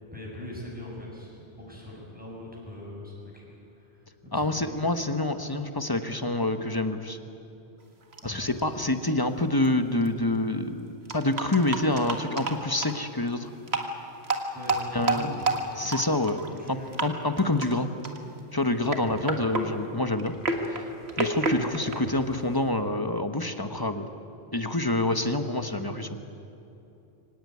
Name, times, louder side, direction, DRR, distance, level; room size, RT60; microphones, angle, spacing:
voice 1, 0.1-3.1 3.4-5.0 8.2-8.5 14.5-15.6 15.9-16.2 16.5-17.0 19.0-19.5 22.0-22.1, left 1 dB, 5° right, -4 dB, 7.1 m, -41 dB
voice 2, 4.3-7.2 8.2-13.5 14.9-15.4 15.8-16.4 16.7-17.9 18.5-20.3 20.7-24.1 24.5-26.1, left 2 dB, 20° left, 8 dB, 1.0 m, -27 dB
sound 1, 8.1-8.2 8.6-8.7 9.7-9.8 10.0-10.1 11.1-13.0 13.6-13.9 14.2-16.7 16.9-17.1 17.4-17.7 18.0-18.4 18.8-22.7, right 2 dB, 65° right, 2.0 m, -30 dB
24.5 x 18.0 x 9.4 m, 2.9 s
omnidirectional pair, 1.2 m